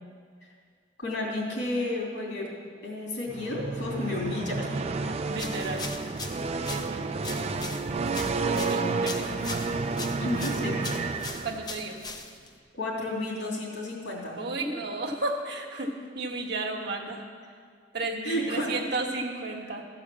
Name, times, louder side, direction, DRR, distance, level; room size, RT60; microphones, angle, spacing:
voice 1, 1.0-2.5 2.8-4.8 8.4-9.0 10.2-10.8 12.7-14.4 18.2-18.9, left 1 dB, 75° left, -4 dB, 3.1 m, -32 dB
sound 1, 3.3-11.9, right 3 dB, 35° right, 0.4 m, -31 dB
sound 2, 5.3-12.6, left 3 dB, 20° left, 0.6 m, -40 dB
voice 2, 5.3-5.9 6.7-7.0 8.2-9.6 11.4-12.0 14.4-17.3 17.9-19.8, right 2 dB, 60° right, 2 dB, 1.2 m, -33 dB
14.5 x 4.9 x 7.4 m, 2.1 s
head